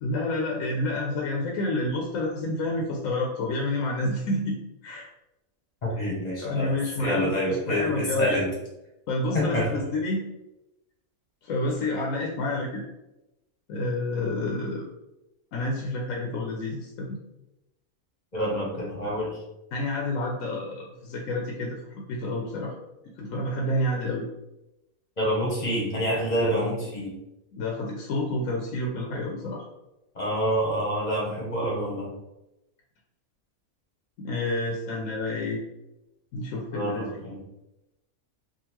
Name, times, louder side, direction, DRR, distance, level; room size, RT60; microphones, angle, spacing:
voice 1, 0.0-5.1 6.4-8.4 9.1-10.2 11.4-12.8 13.7-14.8 15.5-17.2 19.7-22.8 23.2-24.3 27.5-29.6 34.2-35.6 36.3-37.2, left 2 dB, 70° left, -1 dB, 0.9 m, -29 dB
voice 2, 5.8-6.7 7.0-8.5 9.3-9.7 18.3-19.3 25.2-27.1 30.1-32.1 36.7-37.4, equal, 35° left, -4 dB, 0.8 m, -27 dB
3.7 x 2.3 x 2.9 m, 0.94 s
omnidirectional pair, 1.5 m